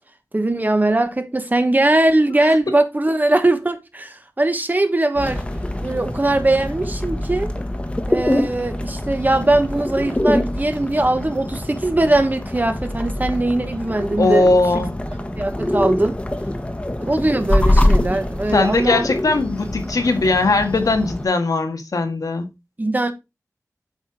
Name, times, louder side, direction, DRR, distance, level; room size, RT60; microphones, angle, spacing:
voice 1, 0.3-5.4 5.8-7.5 8.1-14.9 15.3-16.2 17.0-19.1 22.8-23.1, right 2 dB, 30° right, 1.3 m, -20 dB
sound 1, 5.2-21.3, left 1 dB, 20° left, 1.4 m, -24 dB
voice 2, 14.2-14.9 18.5-22.5, left 3 dB, 80° left, 1.7 m, -19 dB
8.0 x 4.5 x 4.8 m
wide cardioid pair, 60°, 6 cm